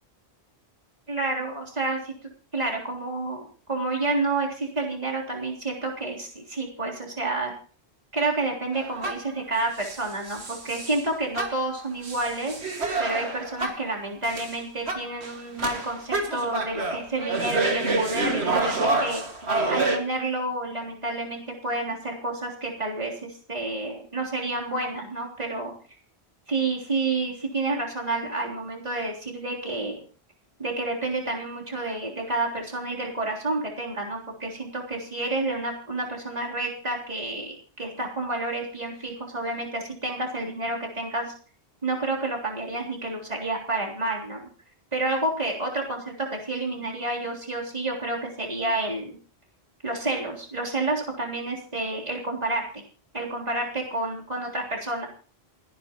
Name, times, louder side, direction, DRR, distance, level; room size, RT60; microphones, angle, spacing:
voice 1, 1.1-2.1 2.5-7.5 8.1-12.5 13.0-19.2 19.7-25.7 26.5-30.0 30.6-41.3 41.8-44.5 44.9-49.2 49.8-52.8 53.1-55.1, right 2 dB, 40° right, -2 dB, 3.7 m, -29 dB
sound 1, 8.7-9.4 9.8-11.0 11.4-13.9 14.2-14.6 14.9-20.0, right 2 dB, 90° right, 2.3 m, -28 dB
29.5 x 10.0 x 3.0 m, 0.41 s
omnidirectional pair, 1.1 m